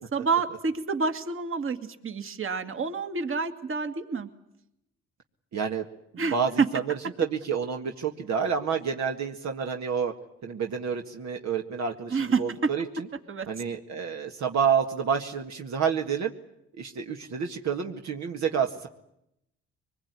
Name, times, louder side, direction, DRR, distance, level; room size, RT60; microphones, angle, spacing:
voice 1, 0.1-1.8 2.0-4.3 6.2-6.4 12.1-12.7 13.3-13.5, right 4 dB, 45° right, 8 dB, 2.3 m, -28 dB
voice 2, 5.5-5.9 6.1-10.1 10.4-13.1 13.5-16.3 16.8-18.9, right 7 dB, 65° right, 3 dB, 1.9 m, -29 dB
24.0 x 21.0 x 9.6 m, 0.81 s
cardioid pair, 90°, 30 cm